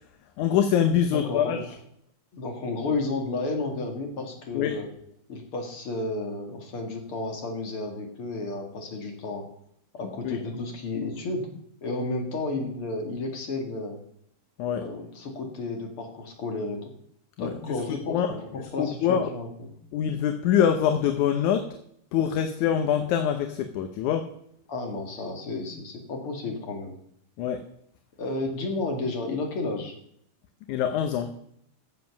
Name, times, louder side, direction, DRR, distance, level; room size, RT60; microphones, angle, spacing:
voice 1, 0.4-1.6 4.5-4.8 10.2-10.4 14.6-14.8 17.4-17.5 17.9-18.3 18.8-19.3 19.9-21.7 22.1-24.3 27.4-27.6 30.7-31.3, left 9 dB, 70° left, 7 dB, 2.1 m, -24 dB
voice 2, 1.1-1.6 2.3-4.9 5.3-9.4 10.0-11.5 11.8-14.0 14.7-16.9 17.4-19.7 24.7-27.0 28.2-29.9, left 2 dB, 45° left, 2 dB, 2.6 m, -32 dB
15.0 x 7.5 x 6.0 m, 0.69 s
omnidirectional pair, 3.8 m